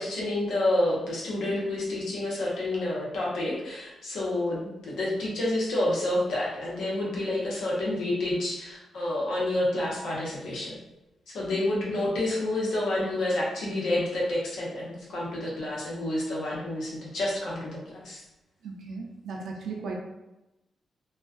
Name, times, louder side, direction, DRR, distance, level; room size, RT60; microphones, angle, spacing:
voice 1, 0.0-10.8 11.3-18.2, left 1 dB, 90° left, -5 dB, 0.8 m, -29 dB
voice 2, 18.6-19.9, right 4 dB, 80° right, -1 dB, 0.4 m, -36 dB
2.3 x 2.2 x 2.4 m, 0.97 s
cardioid pair, 120°, 0 cm